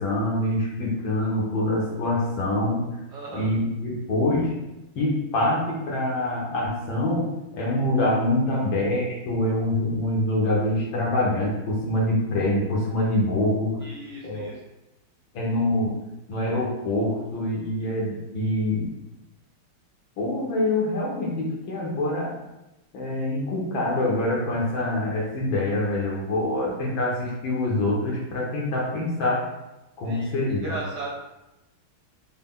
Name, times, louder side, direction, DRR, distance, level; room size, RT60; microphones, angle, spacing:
voice 1, 0.0-2.9 3.3-4.6 5.0-7.3 7.5-13.8 14.2-14.5 15.3-15.9 16.3-18.9 20.2-22.3 22.9-29.5 30.0-30.7, left 1 dB, 65° left, -3 dB, 1.7 m, -25 dB
voice 2, 3.1-3.5 13.8-14.6 30.0-31.1, right 2 dB, 70° right, -2 dB, 1.0 m, -36 dB
5.6 x 2.3 x 3.6 m, 0.95 s
omnidirectional pair, 2.3 m